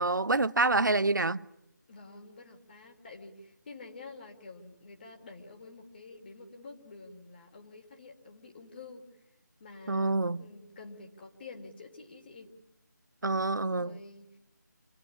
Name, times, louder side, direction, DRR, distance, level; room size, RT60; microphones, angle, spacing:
voice 1, 0.0-1.4 9.9-10.4 13.2-14.0, right 3 dB, 75° right, 0.9 m, -27 dB
voice 2, 1.9-9.1 9.6-12.5 13.6-14.4, left 3 dB, 30° left, 3.3 m, -49 dB
27.5 x 18.5 x 9.9 m
figure-of-eight pair, 160°, 10 cm